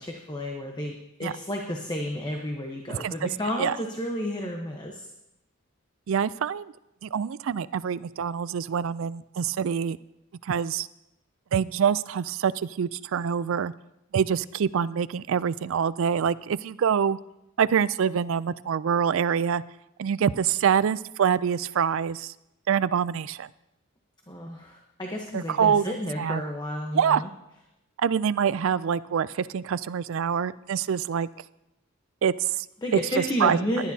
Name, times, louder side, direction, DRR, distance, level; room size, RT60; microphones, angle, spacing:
voice 1, 0.0-5.1 24.3-27.3 32.8-33.9, equal, 20° left, 1 dB, 1.0 m, -31 dB
voice 2, 2.9-3.3 3.6-3.7 6.1-6.7 7.0-10.0 10.4-10.9 11.5-13.7 14.1-17.2 17.6-19.6 20.0-22.3 22.7-23.5 25.3-25.9 26.2-26.4 26.9-27.2 28.0-31.3 32.2-32.7 33.4-33.6, right 7 dB, 65° right, 17 dB, 0.4 m, -25 dB
18.5 x 11.0 x 2.8 m, 0.89 s
head